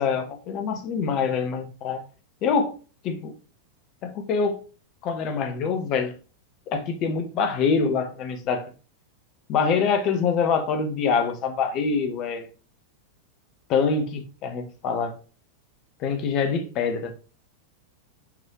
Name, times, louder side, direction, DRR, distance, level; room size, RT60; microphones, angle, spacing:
voice 1, 0.0-2.0 2.4-2.7 3.0-3.3 4.0-4.6 5.0-6.1 6.7-8.7 9.5-12.5 13.7-15.2 16.0-17.1, left 5 dB, 40° left, 1.1 m, -25 dB
5.9 x 5.5 x 3.0 m
figure-of-eight pair, 90°, 0 cm